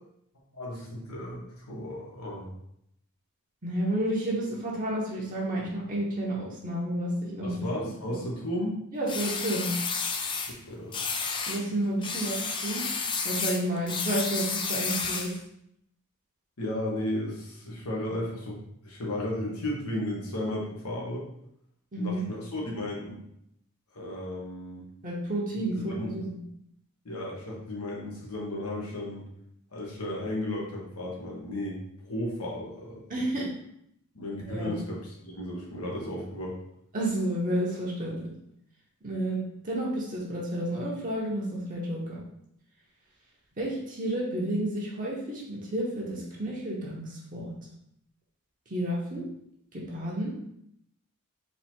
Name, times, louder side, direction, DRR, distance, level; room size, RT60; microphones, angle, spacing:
voice 1, 0.5-2.5 7.4-8.8 10.7-10.9 16.6-21.2 22.0-23.2 23.9-24.8 25.8-26.1 27.0-29.3 29.7-31.8 32.0-33.0 34.1-36.5, left 1 dB, 90° left, -3 dB, 1.3 m, -34 dB
voice 2, 3.6-7.6 8.9-9.7 11.5-12.8 13.2-15.3 21.9-22.3 25.0-26.4 33.1-33.5 34.4-34.7 36.9-38.3 39.0-39.4 39.6-42.2 43.6-47.5 48.7-49.3 49.7-50.3, right 1 dB, 35° right, -5 dB, 1.0 m, -31 dB
sound 1, 9.1-10.5 10.9-11.6 12.0-15.4, left 5 dB, 20° left, 0.3 m, -31 dB
4.1 x 2.8 x 4.4 m, 0.76 s
head